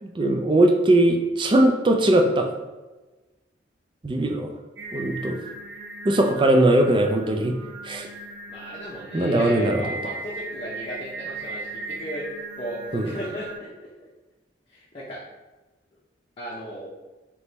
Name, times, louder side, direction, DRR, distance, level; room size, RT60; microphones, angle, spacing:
voice 1, 0.0-2.5 4.0-4.5 4.9-5.4 6.0-7.6 7.8-8.1 9.1-10.0 12.9-13.1, right 1 dB, 25° right, 4 dB, 0.4 m, -20 dB
Singing, 4.8-13.6, right 3 dB, 65° right, 0.9 m, -38 dB
voice 2, 8.5-12.2 12.6-13.9 14.7-15.2 16.4-16.9, equal, 30° left, -6 dB, 0.7 m, -36 dB
3.5 x 3.0 x 4.0 m, 1.2 s
head